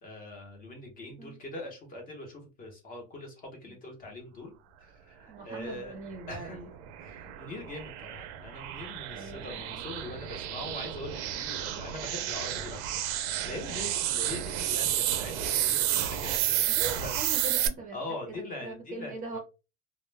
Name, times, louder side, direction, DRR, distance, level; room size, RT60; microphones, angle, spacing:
voice 1, 0.0-4.5 4.8-6.0 6.3-6.6 7.0-17.2 17.9-19.4, left 1 dB, 25° left, 2 dB, 0.7 m, -42 dB
voice 2, 5.3-6.7 7.2-7.3 9.1-9.9 16.7-18.0 18.3-19.4, right 3 dB, 25° right, 1 dB, 0.5 m, -41 dB
sound 1, 6.1-17.7, right 12 dB, 70° right, 0.5 m, -31 dB
2.1 x 2.0 x 3.2 m, 0.30 s
cardioid pair, 160°, 36 cm